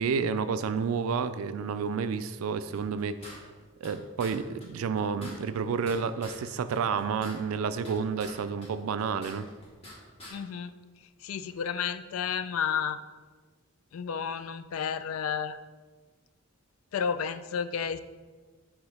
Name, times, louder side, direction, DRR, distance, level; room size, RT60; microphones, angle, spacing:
voice 1, 0.0-3.4 3.8-9.5, right 6 dB, 90° right, 12 dB, 0.4 m, -30 dB
sound 1, 2.7-3.9 4.2-4.3 4.6-4.7 5.0-6.4 6.7-8.3 8.6-9.9 10.2-10.3, left 1 dB, 30° left, 1.3 m, -46 dB
voice 2, 10.3-10.7 11.2-13.0 13.9-15.6 16.9-18.0, left 7 dB, 90° left, 12 dB, 0.4 m, -31 dB
4.8 x 3.7 x 5.4 m, 1.4 s
head